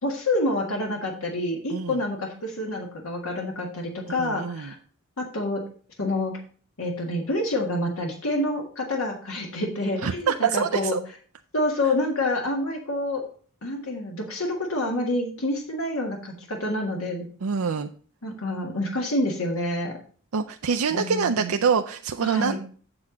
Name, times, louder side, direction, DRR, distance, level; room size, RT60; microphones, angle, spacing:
voice 1, 0.0-4.7 5.2-5.6 6.0-6.4 6.8-11.0 11.5-13.2 13.6-17.2 18.2-19.9 21.0-21.6 22.2-22.6, left 1 dB, 80° left, 1 dB, 1.7 m, -27 dB
voice 2, 1.7-2.0 4.1-4.7 10.0-11.0 17.4-17.9 20.3-22.6, right 6 dB, 90° right, 6 dB, 0.5 m, -25 dB
7.8 x 7.4 x 3.8 m, 0.43 s
head